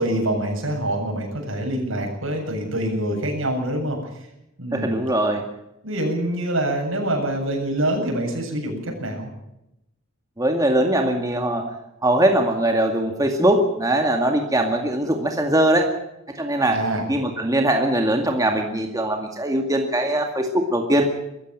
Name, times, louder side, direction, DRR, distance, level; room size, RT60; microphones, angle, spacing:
voice 1, 0.0-4.3 4.6-5.0 5.8-9.3 16.7-17.0, right 1 dB, 75° right, 2 dB, 7.8 m, -25 dB
voice 2, 4.7-5.4 10.4-11.7 12.0-15.9 16.4-16.8 17.1-21.0, right 1 dB, 15° right, 3 dB, 2.2 m, -21 dB
23.0 x 14.5 x 8.9 m, 0.86 s
head